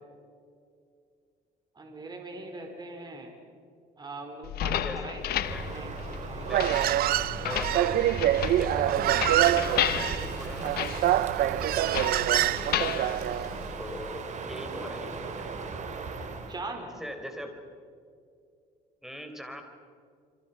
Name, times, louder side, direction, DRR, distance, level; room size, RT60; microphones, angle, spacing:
voice 1, 1.8-3.3 4.0-5.2 5.6-7.1 16.5-16.9, right 2 dB, 25° right, 3 dB, 4.0 m, -41 dB
sound 1, 4.4-14.1, left 11 dB, 70° left, 1.0 m, -34 dB
voice 2, 4.6-5.0 5.5-5.7 6.4-6.7 7.4-10.7 11.3-15.5 16.9-17.6 19.0-19.6, equal, ahead, 5 dB, 4.0 m, -41 dB
Crow, 5.2-16.6, right 4 dB, 45° right, 3.0 m, -38 dB
Human voice, 6.5-13.6, right 14 dB, 60° right, 0.5 m, -26 dB
27.5 x 25.5 x 5.7 m, 2.3 s
cardioid pair, 110°, 17 cm